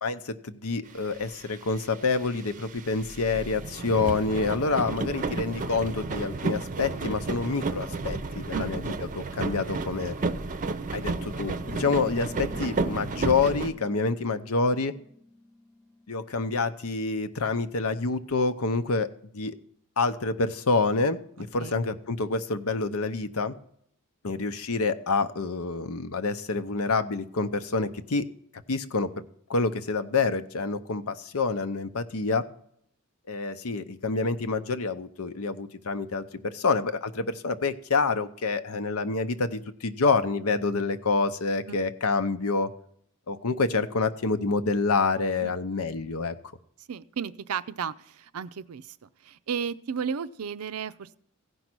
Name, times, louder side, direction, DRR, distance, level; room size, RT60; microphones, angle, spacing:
voice 1, 0.0-10.1 10.9-14.9 16.1-19.6 20.0-23.5 24.2-28.3 28.7-29.2 29.5-32.5 33.3-42.7 43.3-46.3, left 4 dB, 85° left, 11 dB, 0.8 m, -27 dB
sound 1, 1.2-1.3 1.5-1.8 2.2-13.7, right 3 dB, 35° right, 0.6 m, -32 dB
sound 2, 11.6-16.6, left 2 dB, ahead, 0.7 m, -47 dB
voice 2, 46.9-49.0 49.2-51.2, right 7 dB, 90° right, 15 dB, 0.5 m, -34 dB
16.0 x 5.4 x 6.1 m, 0.68 s
head